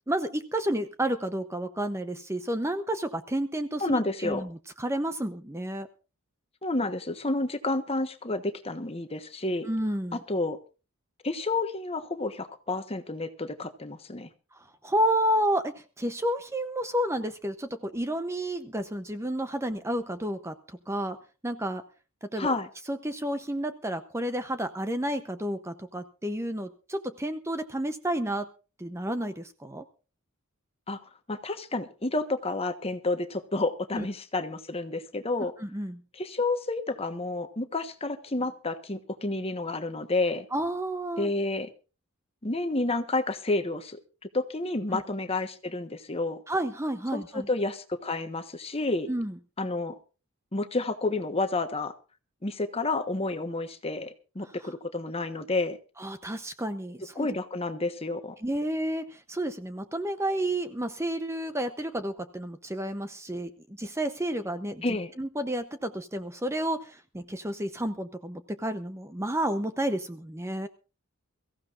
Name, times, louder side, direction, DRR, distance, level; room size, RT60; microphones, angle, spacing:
voice 1, 0.1-5.9 9.7-10.2 14.8-21.2 21.4-21.8 22.2-22.5 22.9-28.5 28.8-29.8 33.9-34.0 35.6-36.0 40.5-41.3 44.9-45.0 46.5-47.5 49.1-49.3 56.0-57.3 58.4-63.5 63.8-64.8 65.2-70.7, right 1 dB, 15° right, 9 dB, 0.8 m, -31 dB
voice 2, 3.8-4.5 6.6-9.7 10.1-10.6 11.2-14.3 22.4-22.7 30.9-31.0 31.3-35.5 36.1-40.5 41.2-41.7 42.4-44.0 44.3-46.4 47.1-49.1 49.6-49.9 50.5-51.9 52.4-55.8 57.2-58.4 64.8-65.1, left 2 dB, 30° left, 8 dB, 1.3 m, -30 dB
23.5 x 15.0 x 2.5 m, 0.33 s
head